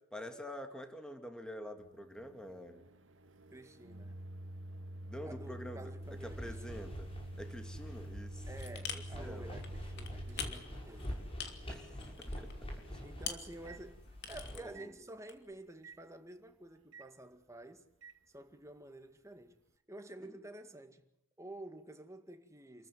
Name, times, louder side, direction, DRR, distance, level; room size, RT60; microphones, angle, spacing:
voice 1, 0.1-2.9 5.1-5.8 6.2-7.1 7.4-8.4 8.9-9.5 11.7-12.0 12.4-12.5 14.5-14.9 20.2-20.4, equal, 5° left, 2.3 m, -47 dB
Microwave oven, 1.8-14.3 14.7-14.9 15.8-16.0 16.9-17.1 18.0-18.2, right 1 dB, 70° right, 1.7 m, -49 dB
voice 2, 3.5-4.2 5.2-6.9 8.5-11.1 13.0-17.8 18.3-19.6 19.9-21.0 21.4-22.9, right 1 dB, 15° right, 2.1 m, -51 dB
sound 1, 6.0-14.5, equal, 30° left, 6.2 m, -46 dB
sound 2, 8.6-9.3 9.6-12.6 12.9-13.6 13.9-14.8 15.3-15.5, left 8 dB, 60° left, 2.9 m, -43 dB
28.5 x 14.5 x 9.6 m
head